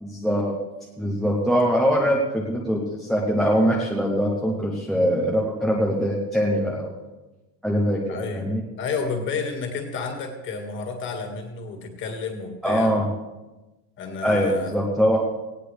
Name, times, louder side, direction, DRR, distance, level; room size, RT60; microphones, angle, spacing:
voice 1, 0.0-0.5 1.0-6.9 7.6-8.6 12.6-13.0 14.2-15.2, equal, ahead, -3 dB, 0.5 m, -22 dB
voice 2, 8.1-8.5 8.8-12.9 14.0-14.7, left 4 dB, 25° left, 4 dB, 1.8 m, -31 dB
18.5 x 17.0 x 3.3 m, 1.1 s
supercardioid pair, 180°, 49 cm